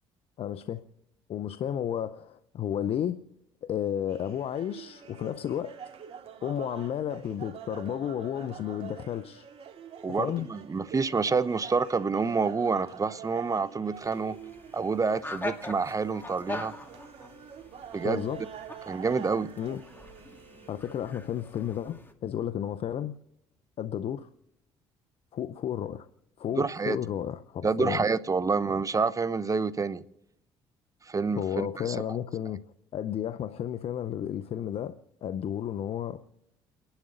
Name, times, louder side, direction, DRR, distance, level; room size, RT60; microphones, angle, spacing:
voice 1, 0.4-0.8 1.3-3.2 3.6-5.7 6.4-9.5 10.2-10.5 18.0-18.4 19.6-19.8 20.7-23.1 23.8-24.3 25.3-26.1 26.4-28.0 31.3-32.6 32.9-36.2, left 10 dB, 60° left, 12 dB, 0.7 m, -32 dB
sound 1, 4.1-21.0, right 8 dB, 55° right, 2.4 m, -46 dB
voice 2, 10.0-14.4 14.7-16.7 17.9-18.3 18.9-19.5 26.6-27.0 27.6-30.0 31.1-32.0, right 4 dB, 30° right, 14 dB, 0.8 m, -28 dB
sound 2, 13.9-22.1, left 2 dB, 20° left, 2.2 m, -42 dB
30.0 x 11.5 x 3.9 m, 0.86 s
supercardioid pair, 65°, 12 cm